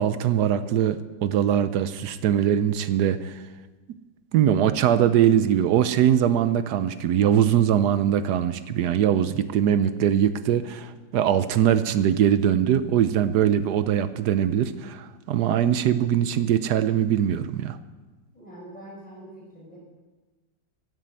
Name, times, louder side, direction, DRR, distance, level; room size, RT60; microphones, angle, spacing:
voice 1, 0.0-3.4 4.3-17.8, right 10 dB, 70° right, 13 dB, 1.1 m, -22 dB
voice 2, 18.3-19.8, right 1 dB, 5° left, -6 dB, 5.1 m, -44 dB
16.0 x 7.6 x 7.7 m, 1.3 s
omnidirectional pair, 2.0 m